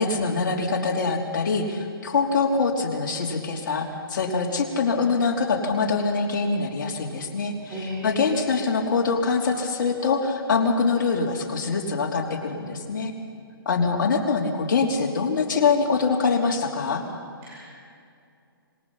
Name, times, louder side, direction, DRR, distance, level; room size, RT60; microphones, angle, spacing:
voice 1, 0.0-13.1 13.6-17.0, left 4 dB, 55° left, 1 dB, 3.4 m, -24 dB
voice 2, 7.7-8.3 17.4-17.6, left 1 dB, 20° right, -5 dB, 4.8 m, -33 dB
26.0 x 20.0 x 5.8 m, 2.4 s
hypercardioid pair, 155°, 12 cm